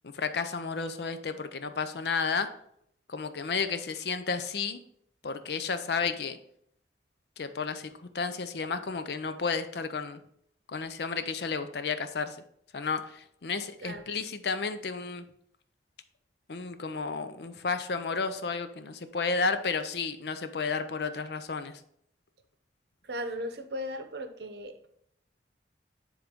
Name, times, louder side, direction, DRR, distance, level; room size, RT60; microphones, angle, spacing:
voice 1, 0.0-2.5 3.1-4.8 5.2-6.4 7.4-10.2 10.7-12.4 12.7-15.3 16.5-21.7, left 5 dB, 65° left, 10 dB, 0.5 m, -32 dB
voice 2, 23.0-24.8, equal, 65° right, 9 dB, 0.7 m, -37 dB
9.7 x 3.8 x 3.6 m, 0.70 s
head